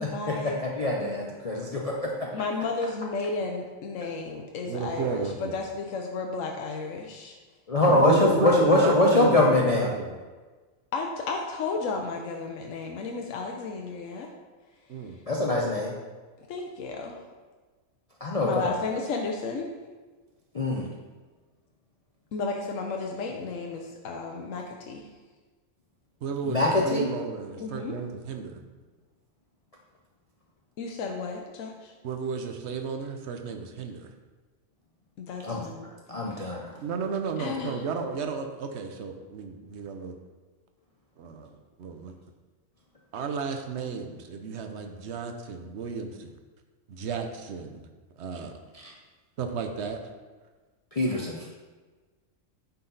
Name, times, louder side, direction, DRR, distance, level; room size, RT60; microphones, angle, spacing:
voice 1, 0.0-0.6 1.0-1.2 2.3-7.4 10.9-14.3 16.5-17.2 18.4-19.7 22.3-25.1 27.6-28.0 30.8-31.9 35.2-35.9 36.3-36.4 37.4-37.8, left 3 dB, 75° left, 1 dB, 1.1 m, -33 dB
voice 2, 0.6-2.3 7.7-9.9 15.3-15.9 18.2-18.5 20.5-20.9 26.4-27.1 35.4-35.6 36.1-36.7 48.8-48.9 50.9-51.4, left 2 dB, 35° left, -3 dB, 0.7 m, -23 dB
voice 3, 4.7-5.5 7.9-10.1 14.9-15.2 26.2-28.6 32.0-34.1 36.8-40.2 41.2-41.5 41.8-42.1 43.1-46.3 46.9-47.8 48.2-48.5 49.4-50.0, right 5 dB, 60° right, 5 dB, 1.0 m, -32 dB
9.5 x 4.3 x 3.9 m, 1.3 s
omnidirectional pair, 1.4 m